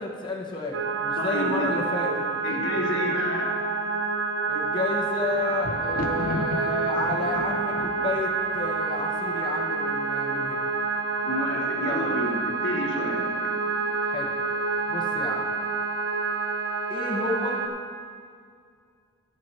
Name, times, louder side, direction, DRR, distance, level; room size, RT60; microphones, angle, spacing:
voice 1, 0.0-2.1 4.5-10.7 11.8-12.1 14.1-14.3 14.9-15.5 16.9-17.6, left 3 dB, 25° left, -3 dB, 1.0 m, -31 dB
sound 1, 0.7-17.7, right 4 dB, 85° right, 0.6 m, -28 dB
voice 2, 1.2-1.7 2.4-3.6 11.2-13.3, left 1 dB, 65° left, 0 dB, 1.2 m, -30 dB
Thunder, 4.6-9.8 10.5-11.0 11.3-11.4, left 2 dB, 50° left, 0.6 m, -36 dB
11.0 x 4.5 x 7.1 m, 2.3 s
head